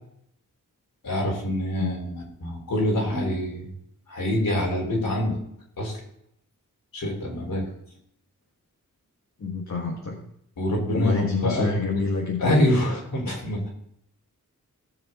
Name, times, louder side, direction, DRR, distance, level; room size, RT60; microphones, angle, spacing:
voice 1, 1.0-3.7 4.1-5.4 5.8-6.0 6.9-7.7 10.6-12.0 12.4-13.7, left 1 dB, 80° left, -2 dB, 4.0 m, -25 dB
voice 2, 9.4-10.3 10.9-12.5, left 3 dB, 55° left, -1 dB, 1.6 m, -27 dB
16.5 x 6.9 x 3.8 m, 0.73 s
wide cardioid pair, 135°, 33 cm